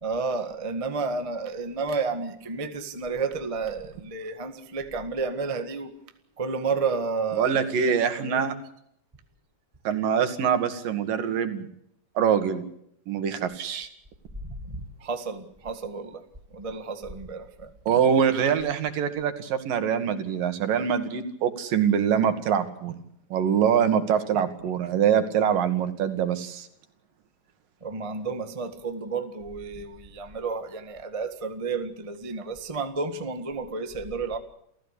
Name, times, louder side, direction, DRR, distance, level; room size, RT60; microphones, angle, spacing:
voice 1, 0.0-5.9 6.4-7.6 8.2-8.5 14.4-16.2 16.5-17.7 24.3-24.4 27.8-34.4, right 4 dB, 20° right, 7 dB, 0.8 m, -31 dB
voice 2, 7.4-8.6 9.9-11.7 12.2-12.7 13.1-13.9 17.9-22.9 23.3-26.7, right 8 dB, 85° right, 9 dB, 3.6 m, -24 dB
28.5 x 15.5 x 8.3 m, 0.74 s
omnidirectional pair, 3.8 m